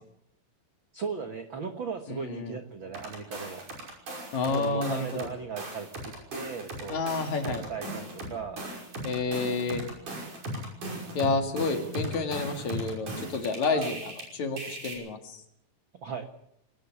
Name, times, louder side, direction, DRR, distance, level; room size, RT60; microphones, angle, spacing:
voice 1, 0.9-3.7 4.4-7.1 7.4-8.6 11.8-11.9 13.7-14.0 16.0-16.3, right 5 dB, 75° right, 6 dB, 1.1 m, -37 dB
voice 2, 2.1-2.6 4.3-5.3 6.9-7.6 9.0-9.8 11.1-15.4, left 3 dB, 50° left, 6 dB, 3.1 m, -30 dB
sound 1, 2.9-5.3 5.6-14.2 14.6-14.9, right 1 dB, 55° right, 7.1 m, -38 dB
22.0 x 18.5 x 7.1 m, 0.75 s
omnidirectional pair, 4.5 m